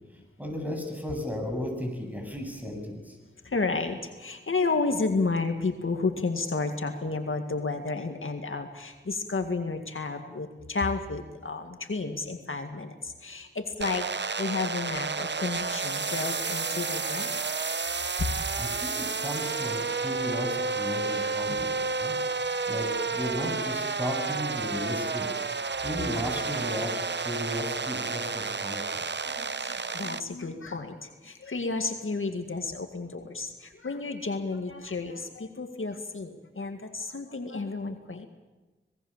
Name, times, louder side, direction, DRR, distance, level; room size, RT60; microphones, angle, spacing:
voice 1, 0.4-3.2 18.6-25.3 25.8-29.0, left 1 dB, 5° right, 3 dB, 7.8 m, -35 dB
voice 2, 3.5-14.1 14.4-17.4 21.0-21.6 29.3-38.3, left 3 dB, 75° left, 5 dB, 2.1 m, -32 dB
sound 1, 13.8-30.2, right 4 dB, 55° right, 0.8 m, -31 dB
26.5 x 20.0 x 7.4 m, 1.2 s
wide cardioid pair, 50°, 21 cm